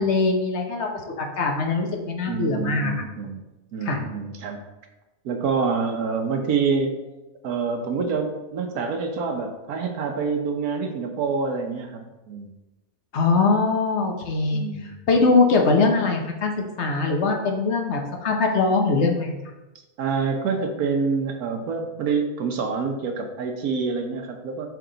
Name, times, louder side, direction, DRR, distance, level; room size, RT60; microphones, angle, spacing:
voice 1, 0.0-2.9 3.8-4.0 13.1-14.6 15.1-19.3, left 3 dB, 50° left, 2 dB, 1.1 m, -22 dB
voice 2, 2.3-3.4 3.7-4.6 5.2-7.0 7.4-12.5 14.5-14.9 20.0-24.7, right 5 dB, 70° right, 4 dB, 1.3 m, -26 dB
7.8 x 3.5 x 3.9 m, 1.0 s
omnidirectional pair, 1.7 m